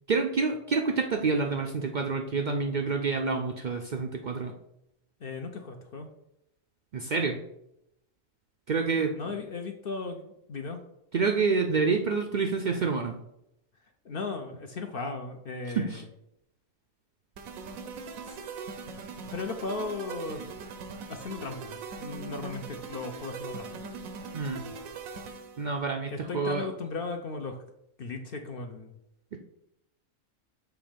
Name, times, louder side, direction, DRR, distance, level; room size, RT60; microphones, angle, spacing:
voice 1, 0.1-4.5 6.9-7.4 8.7-9.3 11.1-13.2 15.8-16.0 24.3-24.6 25.6-26.7 29.3-29.4, right 4 dB, 65° right, 3 dB, 0.4 m, -28 dB
voice 2, 5.2-6.1 9.1-10.8 14.0-16.0 18.3-18.4 19.3-20.4 21.1-23.9 26.1-27.6 28.0-29.0, left 3 dB, 55° left, 5 dB, 0.7 m, -36 dB
sound 1, 17.4-25.7, right 4 dB, 90° right, 1.1 m, -41 dB
7.2 x 3.1 x 5.0 m, 0.81 s
omnidirectional pair, 1.4 m